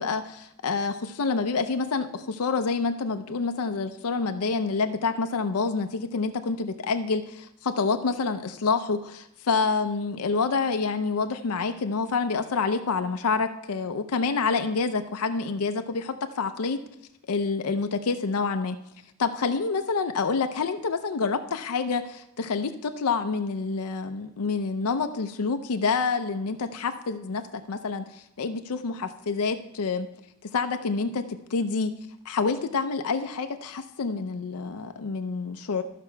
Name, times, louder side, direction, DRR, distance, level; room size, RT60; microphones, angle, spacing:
voice 1, 0.0-16.8 17.3-18.8 19.2-30.1 30.5-31.2 31.5-31.9 32.3-35.8, left 4 dB, 90° left, 7 dB, 0.5 m, -27 dB
13.5 x 5.9 x 4.5 m, 0.79 s
head